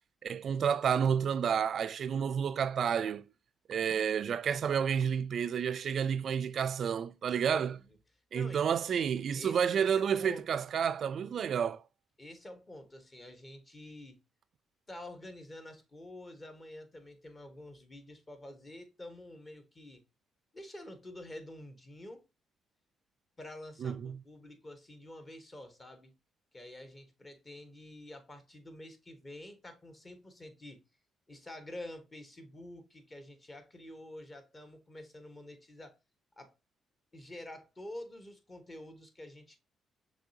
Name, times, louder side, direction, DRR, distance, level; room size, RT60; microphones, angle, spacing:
voice 1, 0.2-3.2 3.7-7.8 8.3-11.8 23.8-24.2, right 7 dB, 60° right, 0.3 m, -30 dB
voice 2, 8.3-8.9 9.3-10.6 12.2-14.2 14.9-20.0 20.5-22.2 23.4-26.1 26.5-30.8 31.3-36.0 36.4-36.6 37.1-39.6, left 1 dB, 30° left, 1.2 m, -48 dB
6.2 x 3.2 x 2.7 m
cardioid pair, 90°, 0 cm